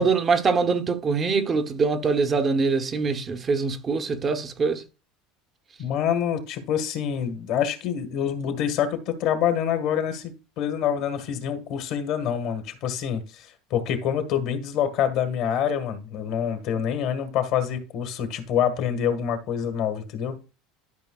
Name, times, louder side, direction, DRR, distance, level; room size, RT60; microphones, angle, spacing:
voice 1, 0.0-4.8, right 4 dB, 30° right, 0.9 m, -23 dB
voice 2, 5.8-20.4, left 9 dB, 60° left, 1.5 m, -26 dB
12.5 x 5.2 x 2.4 m
hypercardioid pair, 95°, 0 cm